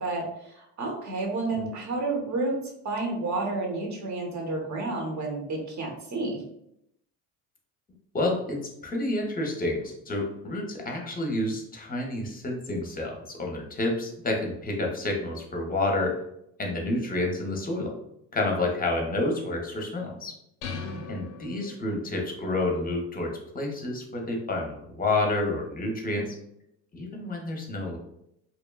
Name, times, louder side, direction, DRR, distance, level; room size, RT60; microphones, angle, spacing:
voice 1, 0.0-2.6 2.8-6.4 20.7-21.0, right 2 dB, 45° right, 0 dB, 0.9 m, -31 dB
voice 2, 8.1-16.2 16.6-18.0 18.3-20.3 21.1-26.3 26.9-28.0, left 2 dB, 20° left, 1 dB, 0.7 m, -29 dB
sound 1, 20.6-22.2, left 6 dB, 85° left, 0.5 m, -39 dB
2.9 x 2.1 x 2.2 m, 0.78 s
supercardioid pair, 80°, 40 cm